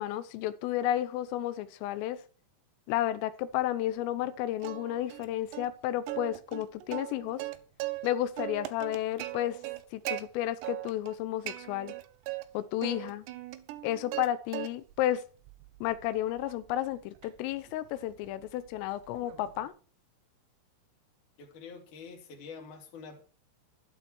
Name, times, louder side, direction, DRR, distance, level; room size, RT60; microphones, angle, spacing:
voice 1, 0.0-2.2 2.9-7.4 8.0-9.6 9.9-11.9 12.6-13.3 13.8-15.2 15.8-19.7, left 13 dB, 90° left, 13 dB, 3.5 m, -32 dB
Plucked string instrument, 4.6-5.3 5.5-5.7 6.1-8.1 8.4-10.2 10.6-11.2 11.5-12.4 12.8-14.3 14.5-15.0 15.4-19.7, right 16 dB, 75° right, 2.8 m, -39 dB
voice 2, 21.4-23.2, left 5 dB, 45° left, 4 dB, 3.4 m, -46 dB
12.0 x 11.0 x 4.5 m, 0.37 s
omnidirectional pair, 5.7 m